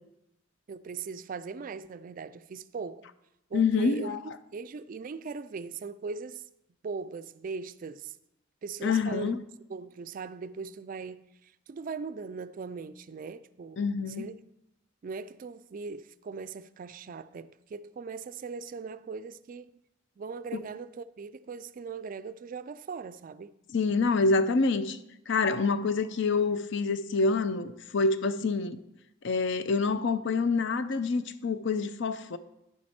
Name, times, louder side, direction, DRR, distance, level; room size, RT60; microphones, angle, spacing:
voice 1, 0.7-3.1 3.5-4.2 4.5-6.4 6.8-8.2 8.6-9.3 9.7-13.8 14.1-14.3 15.0-19.7 20.2-23.5, right 4 dB, 40° right, 0.3 m, -39 dB
voice 2, 3.5-4.2 8.8-9.4 13.8-14.3 20.5-20.6 23.7-25.0 25.3-28.8 29.2-32.4, left 4 dB, 60° left, 0.5 m, -27 dB
9.9 x 7.5 x 4.3 m
head